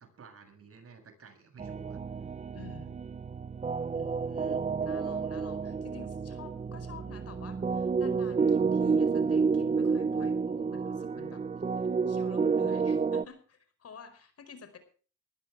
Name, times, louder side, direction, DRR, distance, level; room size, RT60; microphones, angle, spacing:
voice 1, 0.0-2.0 6.0-6.1, right 5 dB, 50° right, 6 dB, 7.5 m, -53 dB
sound 1, 1.6-13.2, right 5 dB, 25° right, 0.7 m, -30 dB
voice 2, 2.5-3.0 3.9-11.4 12.1-14.8, left 5 dB, 50° left, 10 dB, 4.9 m, -49 dB
22.0 x 15.0 x 3.4 m, 0.41 s
cardioid pair, 90°, 30 cm